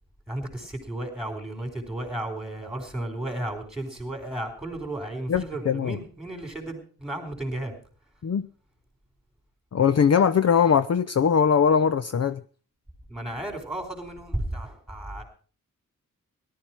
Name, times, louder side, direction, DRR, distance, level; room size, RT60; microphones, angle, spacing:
voice 1, 0.3-7.7 13.1-15.2, right 1 dB, ahead, 5 dB, 4.2 m, -33 dB
voice 2, 5.3-6.0 8.2-8.4 9.7-12.4, left 7 dB, 50° left, 13 dB, 0.6 m, -21 dB
18.0 x 12.0 x 4.4 m, 0.39 s
wide cardioid pair, 165°, 33 cm